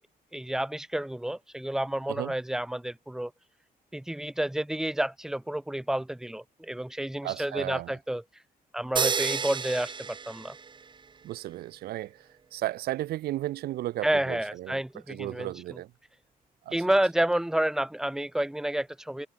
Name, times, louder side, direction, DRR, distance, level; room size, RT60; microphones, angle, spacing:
voice 1, 0.3-3.3 3.9-8.2 8.7-10.6 14.0-15.8 16.7-19.3, right 1 dB, 5° right, 1.0 m, -30 dB
voice 2, 7.2-7.9 11.2-12.2 12.5-14.8 15.1-15.9 16.7-16.8, right 15 dB, 80° right, 0.8 m, -34 dB
sound 1, 9.0-11.1, right 5 dB, 30° right, 1.5 m, -31 dB
cardioid pair, 130°, 16 cm